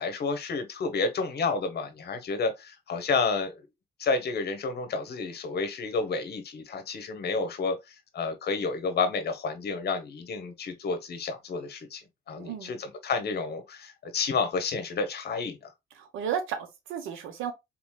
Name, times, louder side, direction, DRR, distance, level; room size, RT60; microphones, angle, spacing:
voice 1, 0.0-3.6 4.0-12.0 12.3-15.6, left 4 dB, 55° left, 1.0 m, -30 dB
voice 2, 12.4-12.7 16.0-17.5, right 8 dB, 90° right, 0.9 m, -33 dB
4.0 x 3.1 x 2.2 m
cardioid pair, 90°, 20 cm